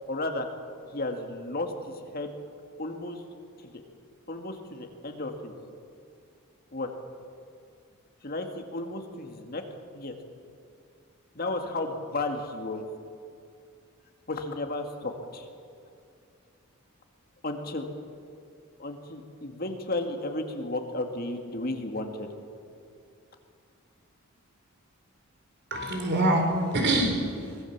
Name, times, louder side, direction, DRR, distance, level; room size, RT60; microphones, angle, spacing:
voice 1, 0.1-0.5 0.9-2.3 2.8-3.2 3.7-3.8 4.3-5.5 6.7-6.9 8.2-9.6 9.9-10.1 11.4-12.8 14.3-15.5 17.4-17.9 18.8-22.3, left 2 dB, 45° left, 4 dB, 2.0 m, -33 dB
voice 2, 25.7-27.6, right 1 dB, 50° right, 3 dB, 4.2 m, -25 dB
23.5 x 19.0 x 7.3 m, 2.4 s
head